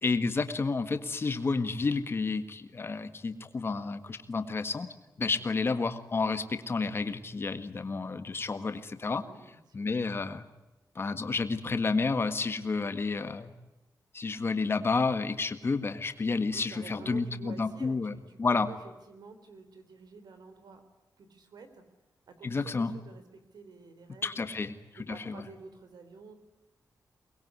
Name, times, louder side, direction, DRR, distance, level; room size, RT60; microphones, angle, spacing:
voice 1, 0.0-4.9 5.2-9.2 9.7-10.4 10.9-13.5 14.1-18.7 22.4-22.9 24.2-24.7 25.3-25.4, left 4 dB, 35° left, 9 dB, 1.7 m, -30 dB
voice 2, 9.2-9.9 16.5-18.4 18.7-18.8 19.1-20.8 21.2-21.8 22.3-24.5 25.0-26.3, right 4 dB, 85° right, 9 dB, 3.8 m, -50 dB
24.0 x 21.0 x 9.6 m, 1.0 s
wide cardioid pair, 160°, 7 cm